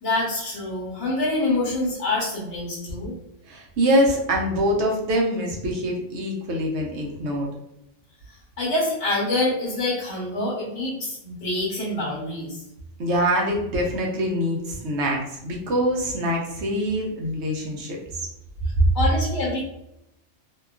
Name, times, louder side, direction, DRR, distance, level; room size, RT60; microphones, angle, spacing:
voice 1, 0.0-3.1 8.3-12.6 18.9-19.6, left 2 dB, 65° left, -6 dB, 1.2 m, -26 dB
voice 2, 3.5-7.5 13.0-18.0, equal, 65° right, -1 dB, 0.9 m, -24 dB
2.8 x 2.3 x 2.3 m, 0.84 s
omnidirectional pair, 1.3 m